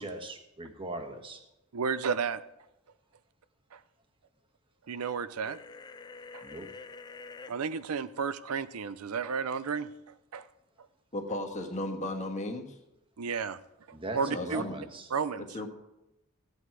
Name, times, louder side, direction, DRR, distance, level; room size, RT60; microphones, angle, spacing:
voice 1, 0.0-1.4 6.4-6.7 13.9-15.1, right 1 dB, 25° right, 5 dB, 1.3 m, -39 dB
voice 2, 1.7-2.4 3.7-3.8 4.9-5.6 6.3-6.4 7.5-9.9 10.3-10.4 13.2-13.6 14.1-14.6 15.1-15.5, right 5 dB, 90° right, 15 dB, 0.6 m, -32 dB
sound 1, 5.4-7.5, left 4 dB, 20° left, 0.4 m, -46 dB
voice 3, 11.1-12.8 14.2-14.8 15.4-15.7, left 1 dB, 35° left, 3 dB, 1.5 m, -35 dB
16.0 x 8.6 x 4.7 m, 0.94 s
head